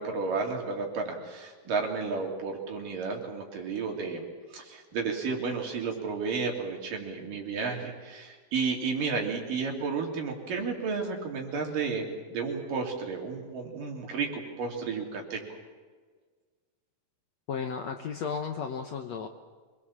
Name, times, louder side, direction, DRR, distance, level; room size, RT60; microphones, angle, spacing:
voice 1, 0.0-4.2 4.5-15.4, right 4 dB, 65° right, 1 dB, 4.7 m, -32 dB
voice 2, 17.5-19.3, left 6 dB, 65° left, 5 dB, 1.8 m, -34 dB
26.5 x 21.5 x 7.4 m, 1.5 s
omnidirectional pair, 4.2 m